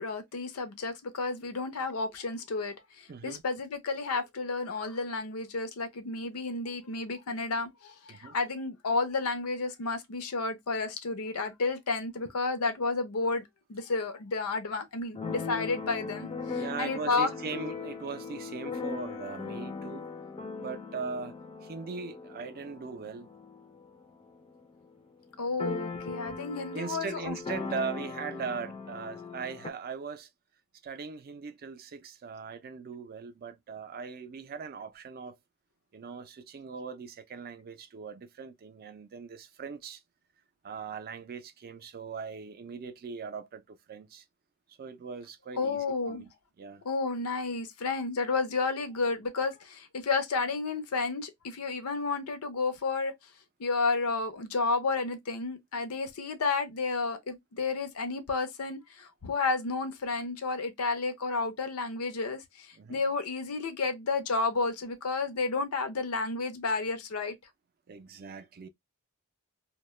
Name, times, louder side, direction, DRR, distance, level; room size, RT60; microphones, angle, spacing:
voice 1, 0.0-13.4 13.7-17.3 25.4-27.4 45.6-46.2 46.8-53.1 53.6-67.3, left 3 dB, 85° left, 0.6 m, -31 dB
voice 2, 3.1-3.4 8.1-8.4 16.5-20.1 20.6-23.3 26.7-30.3 30.8-35.4 35.9-40.0 40.6-44.2 44.8-46.3 46.6-46.8 62.8-63.0 66.7-66.8 67.9-68.7, right 5 dB, 45° right, 0.4 m, -40 dB
Keyboard (musical), 15.1-24.7 25.0-25.1 25.3-29.7, left 4 dB, 25° left, 0.4 m, -39 dB
2.2 x 2.0 x 3.0 m
head